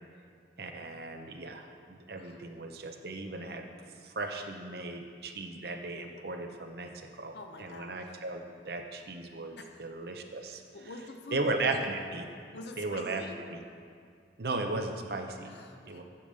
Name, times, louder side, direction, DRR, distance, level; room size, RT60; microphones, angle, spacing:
voice 1, 0.6-3.7 4.0-6.9 7.2-10.6 11.3-12.2 12.8-13.2 13.5-13.6 14.4-15.5 15.8-16.0, right 2 dB, 60° right, 5 dB, 0.7 m, -36 dB
voice 2, 7.3-8.0 9.6-9.8 10.4-11.8 12.5-13.4 15.4-16.0, left 2 dB, 70° left, 4 dB, 0.8 m, -46 dB
8.4 x 5.1 x 6.7 m, 2.2 s
head